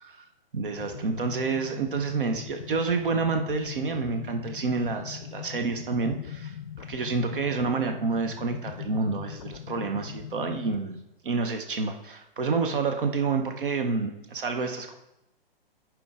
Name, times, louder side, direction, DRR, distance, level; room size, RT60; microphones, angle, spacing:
voice 1, 0.5-14.9, right 4 dB, 60° right, 6 dB, 0.9 m, -29 dB
sound 1, 0.8-10.8, left 9 dB, 40° left, 0.5 m, -40 dB
11.0 x 4.6 x 3.7 m, 0.89 s
figure-of-eight pair, 125°, 30 cm